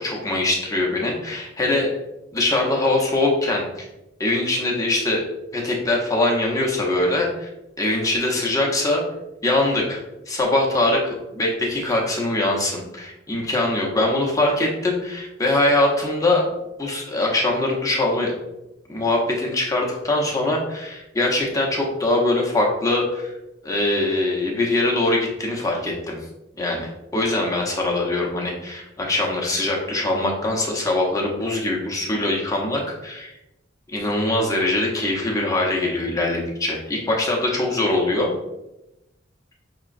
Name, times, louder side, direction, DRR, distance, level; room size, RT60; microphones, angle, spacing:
voice 1, 0.0-1.9 2.3-3.9 4.2-5.2 5.5-7.5 7.8-9.0 9.4-10.0 10.3-16.5 16.8-18.3 18.9-23.3 23.6-26.2 26.6-33.4 33.9-38.3, left 2 dB, 20° left, -1 dB, 0.7 m, -22 dB
5.5 x 3.0 x 2.5 m, 0.94 s
head